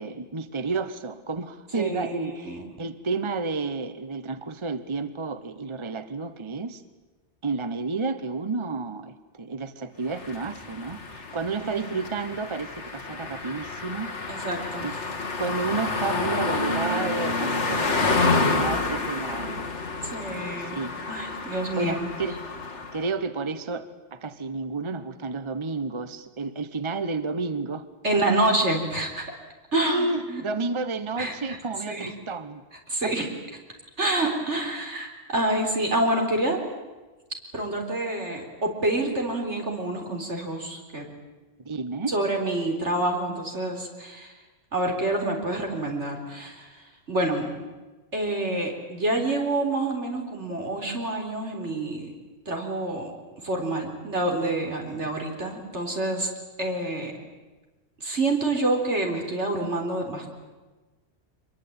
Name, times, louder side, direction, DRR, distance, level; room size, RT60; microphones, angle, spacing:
voice 1, 0.0-6.8 7.4-14.1 14.8-14.9 15.4-19.7 20.6-20.9 21.8-22.4 22.9-27.9 28.1-28.2 29.7-32.6 33.0-33.1 41.6-42.1, right 4 dB, 25° right, 12 dB, 1.0 m, -31 dB
voice 2, 1.7-2.7 11.6-11.9 14.3-15.0 20.0-22.1 28.0-29.2 29.7-30.4 31.2-31.6 31.9-32.1 32.9-33.3 34.0-36.6 37.5-41.1 42.1-44.3 44.7-47.5 48.1-52.1 52.5-53.1 53.4-56.3 56.6-57.1 58.0-60.3, right 2 dB, 80° right, 2 dB, 4.4 m, -27 dB
sound 1, 10.1-23.1, left 3 dB, 80° left, 2.3 m, -29 dB
25.0 x 22.0 x 8.8 m, 1.2 s
omnidirectional pair, 1.2 m